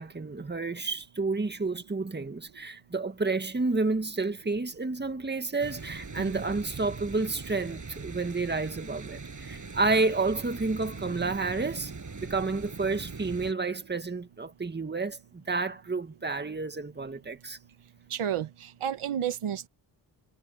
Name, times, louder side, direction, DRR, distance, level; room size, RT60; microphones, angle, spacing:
voice 1, 0.0-11.9 12.2-17.6, right 3 dB, 20° right, 1.8 m, -30 dB
sound 1, 5.6-13.5, right 4 dB, 35° right, 7.1 m, -41 dB
voice 2, 18.1-19.7, right 9 dB, 80° right, 1.4 m, -32 dB
cardioid pair, 85°, 49 cm